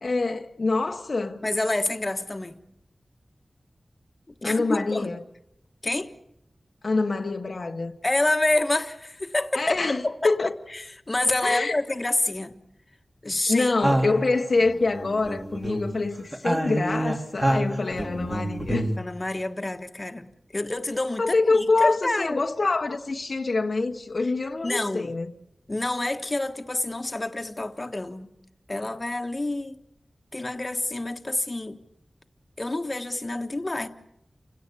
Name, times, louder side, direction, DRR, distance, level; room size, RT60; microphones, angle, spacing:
voice 1, 0.0-1.4 4.4-5.2 6.8-7.9 9.5-10.6 11.4-11.8 13.5-18.9 21.2-25.3, left 3 dB, 65° left, 1.2 m, -25 dB
voice 2, 1.4-2.6 4.4-5.2 5.8-6.1 8.0-12.5 13.2-13.7 19.0-22.4 24.6-25.1 25.7-28.3 28.7-29.8 30.3-31.8 32.6-33.9, left 2 dB, 35° left, 1.5 m, -28 dB
sound 1, 13.8-16.0 16.3-19.0, right 1 dB, 25° right, 2.8 m, -27 dB
29.0 x 17.0 x 8.4 m
wide cardioid pair, 90°, 0 cm